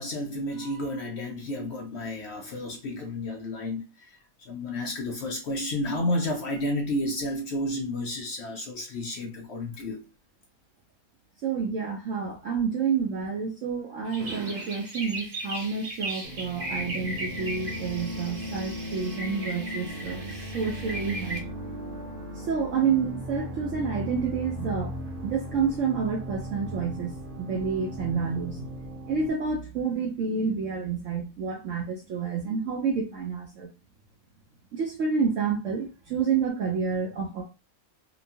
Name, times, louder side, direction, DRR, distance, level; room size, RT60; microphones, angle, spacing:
voice 1, 0.0-3.8 4.5-10.0, left 1 dB, 70° left, 0.6 m, -31 dB
voice 2, 11.4-21.4 22.5-25.0 25.2-28.6 29.1-33.7 34.7-37.4, right 5 dB, 65° right, 0.9 m, -29 dB
sound 1, 14.1-21.4, right 1 dB, 40° right, 0.7 m, -37 dB
sound 2, 16.2-29.3, equal, 80° right, 1.3 m, -37 dB
2.9 x 2.2 x 2.6 m
omnidirectional pair, 1.6 m